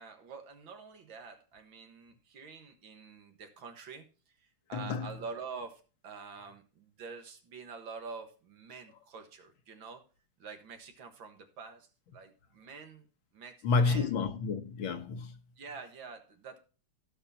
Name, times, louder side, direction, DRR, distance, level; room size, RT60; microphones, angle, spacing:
voice 1, 0.0-4.1 4.4-10.0 10.4-13.1 13.3-14.1 15.6-16.6, right 5 dB, 70° right, 2.2 m, -47 dB
voice 2, 4.7-5.1 13.6-15.4, left 4 dB, 75° left, 1.9 m, -30 dB
17.5 x 5.9 x 2.8 m
omnidirectional pair, 2.2 m